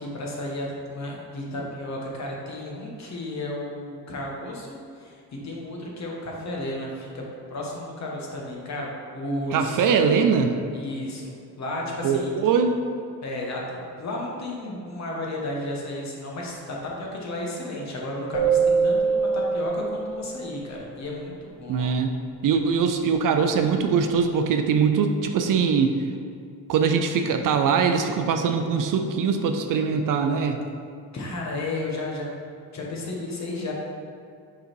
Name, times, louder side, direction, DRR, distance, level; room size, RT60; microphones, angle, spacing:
voice 1, 0.0-7.2 7.5-9.9 10.7-12.3 13.2-21.9 31.1-32.3 32.7-33.7, left 1 dB, 45° left, -2 dB, 1.2 m, -33 dB
voice 2, 9.5-10.6 12.0-12.8 21.7-22.2 22.4-26.0 26.7-30.6, right 6 dB, 55° right, 6 dB, 0.5 m, -22 dB
sound 1, 18.3-20.6, right 5 dB, 20° right, 0.9 m, -23 dB
5.3 x 4.0 x 4.5 m, 2.4 s
cardioid pair, 120°, 39 cm